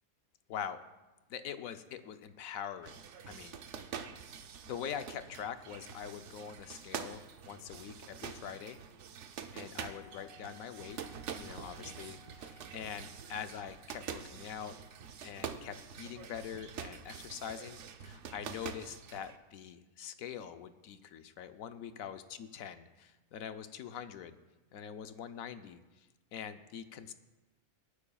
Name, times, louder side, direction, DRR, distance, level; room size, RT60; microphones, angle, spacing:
voice 1, 0.5-0.8 1.3-3.0 3.3-3.6 4.0-4.1 4.7-8.8 9.5-11.0 11.4-14.8 15.2-24.4 24.7-25.8 26.3-27.1, left 8 dB, 70° left, 10 dB, 1.0 m, -44 dB
sound 1, 2.8-19.4, right 7 dB, 60° right, 0.9 m, -46 dB
Wind instrument woodwind instrument, 9.7-15.3, left 5 dB, 20° right, 0.9 m, -62 dB
25.0 x 9.7 x 2.3 m, 1.1 s
omnidirectional pair, 1.5 m